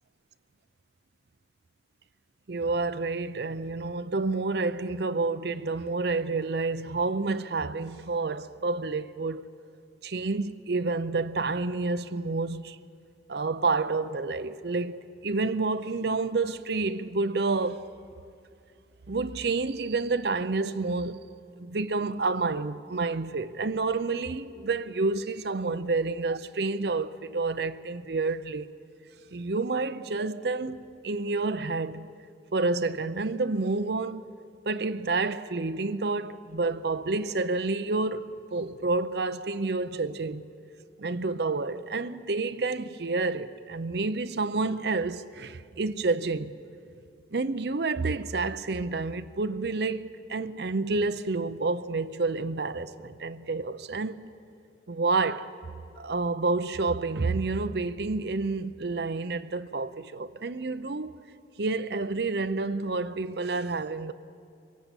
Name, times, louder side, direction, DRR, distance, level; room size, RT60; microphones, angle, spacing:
voice 1, 2.5-9.4 10.0-12.8 13.3-17.9 19.1-21.2 21.6-28.7 29.3-32.1 32.5-34.2 34.7-40.4 41.0-46.5 47.3-54.3 54.9-55.5 56.0-61.2 61.6-64.1, right 3 dB, 60° right, 0.6 m, -29 dB
23.5 x 17.5 x 8.2 m
head